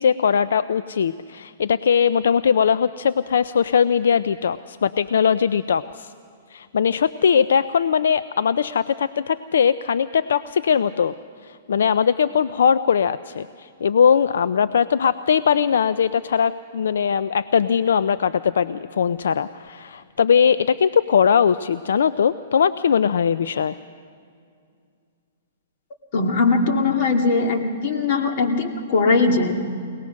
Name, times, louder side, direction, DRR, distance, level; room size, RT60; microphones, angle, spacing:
voice 1, 0.0-6.1 6.5-11.1 11.4-23.8, left 7 dB, 80° left, 14 dB, 0.4 m, -20 dB
voice 2, 26.1-29.6, left 3 dB, 50° left, 2 dB, 2.5 m, -20 dB
23.5 x 18.5 x 6.3 m, 2.3 s
hypercardioid pair, 140°, 0 cm